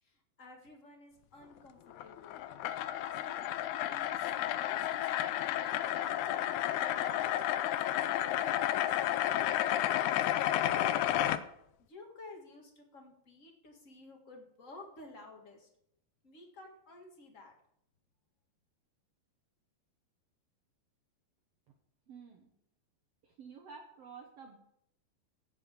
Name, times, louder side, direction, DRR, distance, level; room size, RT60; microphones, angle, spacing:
voice 1, 0.0-2.4 3.1-3.4 3.9-6.3 6.9-9.8 10.7-11.0 11.8-15.7 16.2-17.5, left 2 dB, 35° left, 1 dB, 1.4 m, -52 dB
sound 1, 1.9-11.4, left 12 dB, 90° left, 1.7 m, -31 dB
voice 2, 22.1-22.5 23.2-24.6, right 5 dB, 65° right, 3 dB, 1.6 m, -51 dB
16.0 x 5.5 x 6.7 m, 0.76 s
omnidirectional pair, 4.2 m